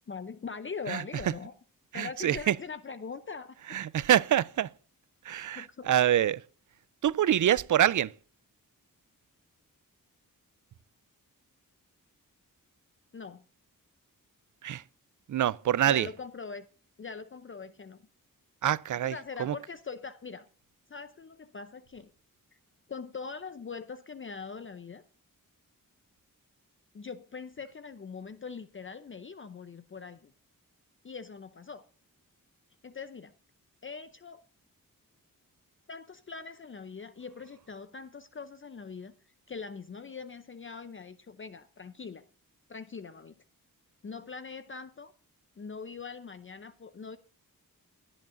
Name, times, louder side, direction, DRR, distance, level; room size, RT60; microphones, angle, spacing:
voice 1, 0.1-1.5 1.9-3.8 5.5-6.0 13.1-13.4 15.9-16.7 17.0-18.0 19.0-20.5 20.9-22.1 22.9-25.0 26.9-30.3 31.0-31.8 32.8-33.3 33.8-34.4 35.9-39.1 39.5-42.2 42.7-43.3 44.0-45.1 45.6-47.2, left 5 dB, 35° left, 0.6 m, -42 dB
voice 2, 1.9-2.6 3.7-4.7 5.2-6.4 7.0-8.1 14.6-14.8 15.3-16.1 18.6-19.1 19.4-19.5, right 11 dB, 60° right, 0.5 m, -25 dB
17.0 x 11.0 x 2.5 m
wide cardioid pair, 110°, 35 cm